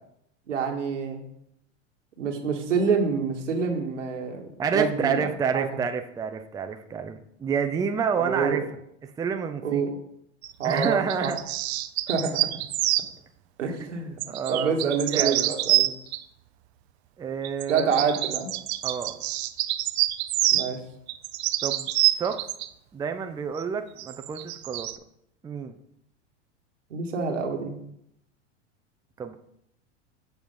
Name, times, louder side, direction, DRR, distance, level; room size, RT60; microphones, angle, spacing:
voice 1, 0.5-1.2 2.2-5.3 5.5-5.7 8.1-8.6 9.6-9.9 10.6-11.3 12.1-12.5 13.6-14.2 14.5-15.9 17.7-18.5 20.5-20.8 26.9-27.8, right 5 dB, 85° right, 2 dB, 1.6 m, -27 dB
voice 2, 4.6-8.6 9.2-9.8 10.6-11.4 13.7-13.8 14.3-15.6 17.2-18.0 18.8-19.2 21.6-21.9 22.2-22.4 22.9-24.9 25.4-25.8 29.2-29.4, right 6 dB, 10° right, 7 dB, 0.4 m, -29 dB
sound 1, 10.4-13.1 14.2-16.2 17.4-20.7 21.1-22.7 23.6-23.7 24.0-25.0, right 16 dB, 65° right, 0.6 m, -26 dB
7.3 x 4.6 x 5.4 m, 0.75 s
hypercardioid pair, 105°, 36 cm